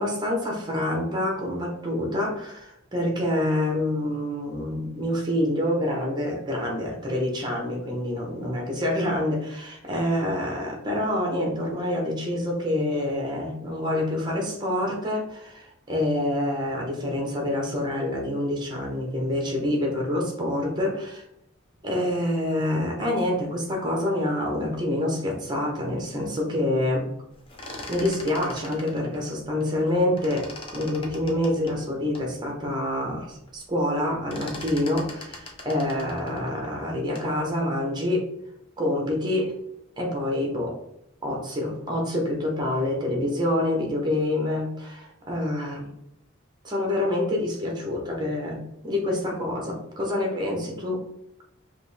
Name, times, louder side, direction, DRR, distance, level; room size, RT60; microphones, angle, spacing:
voice 1, 0.0-21.2 21.8-27.1 27.9-38.3 38.8-39.5 40.0-40.8 41.2-45.9 46.6-51.0, left 1 dB, 20° right, 0 dB, 1.0 m, -27 dB
sound 1, 27.4-29.9 30.2-32.3 32.8-32.9 33.2-33.6 33.8-37.4, left 1 dB, 25° left, 0.7 m, -41 dB
5.2 x 2.7 x 3.4 m, 0.79 s
head